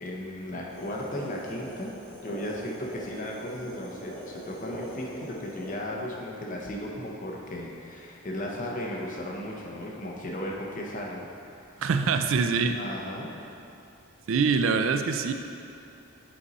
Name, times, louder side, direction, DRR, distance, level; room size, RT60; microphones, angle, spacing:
voice 1, 0.0-1.9 2.2-11.7 12.7-13.3, left 1 dB, 35° left, -2 dB, 0.8 m, -36 dB
sound 1, 0.7-5.7, equal, 65° left, 1.4 m, -41 dB
voice 2, 11.8-12.8 14.3-15.3, right 5 dB, 65° right, 7 dB, 0.3 m, -24 dB
7.6 x 4.1 x 4.1 m, 2.8 s
head